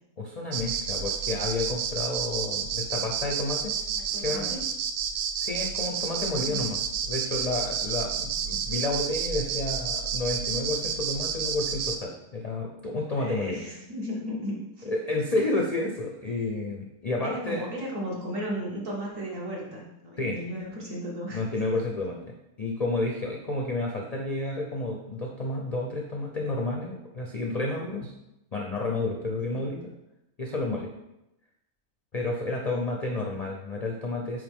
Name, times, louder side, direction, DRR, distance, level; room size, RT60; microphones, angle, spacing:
voice 1, 0.2-3.7 4.2-4.5 5.3-6.8 7.1-13.6 14.9-17.6 20.2-20.3 21.3-22.2 22.6-28.1 28.5-29.8 30.4-30.9 32.1-34.4, left 2 dB, 55° left, 0 dB, 0.4 m, -30 dB
sound 1, 0.5-12.0, right 7 dB, 85° right, 1.1 m, -30 dB
voice 2, 4.1-4.7 6.3-6.6 13.1-14.9 17.2-21.4 29.5-29.6, equal, 60° right, -4 dB, 1.9 m, -35 dB
8.8 x 3.2 x 3.6 m, 0.89 s
omnidirectional pair, 1.6 m